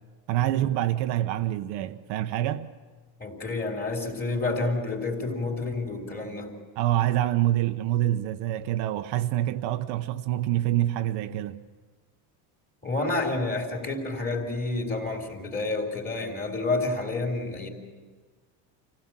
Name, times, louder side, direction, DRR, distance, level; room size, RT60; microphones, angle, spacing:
voice 1, 0.3-2.7 6.8-11.6, right 13 dB, 65° right, 0.9 m, -26 dB
voice 2, 3.2-6.5 12.8-17.7, left 2 dB, 20° left, 3.4 m, -29 dB
26.5 x 16.5 x 7.5 m
cardioid pair, 155°, 47 cm